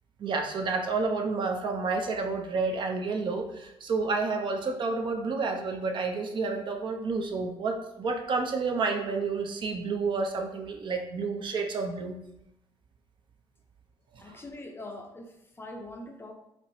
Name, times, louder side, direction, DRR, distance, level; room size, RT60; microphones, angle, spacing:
voice 1, 0.2-12.2 14.1-14.3, right 4 dB, 50° right, 3 dB, 0.5 m, -30 dB
voice 2, 14.2-16.3, left 1 dB, 20° left, 3 dB, 0.5 m, -43 dB
4.3 x 2.0 x 2.6 m, 0.85 s
cardioid pair, 80°, 10 cm